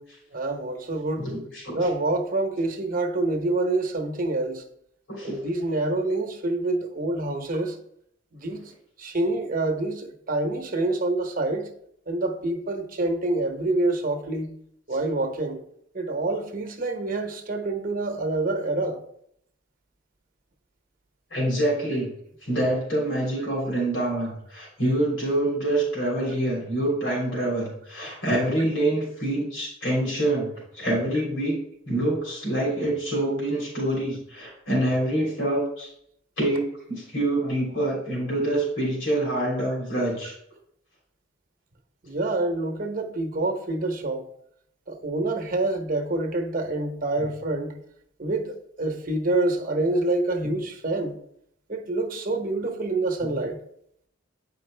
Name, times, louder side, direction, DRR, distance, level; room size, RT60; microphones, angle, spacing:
voice 1, 0.3-1.3 1.7-4.6 5.2-7.8 8.3-8.6 9.0-11.7 12.1-14.5 14.9-15.6 15.9-19.0 27.4-27.5 39.7-39.8 42.0-44.3 44.9-47.8 48.2-51.1 51.7-53.6, right 2 dB, 45° right, 1.0 m, -27 dB
voice 2, 1.2-1.7 5.2-5.4 21.3-22.1 22.4-30.5 30.7-31.5 31.9-35.9 36.4-36.6 36.9-40.3, right 1 dB, 75° left, 3.3 m, -26 dB
8.9 x 5.2 x 3.3 m
head